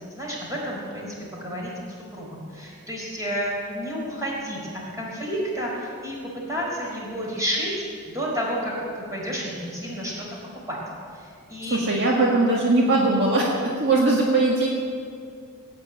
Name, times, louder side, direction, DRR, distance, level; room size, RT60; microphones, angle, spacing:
voice 1, 0.1-7.8 8.1-10.3 10.7-10.8 11.1-11.8, equal, 15° right, -4 dB, 4.7 m, -31 dB
voice 2, 11.7-13.5 13.8-14.7, right 2 dB, 50° right, -2 dB, 1.8 m, -20 dB
17.0 x 8.9 x 8.8 m, 2.3 s
head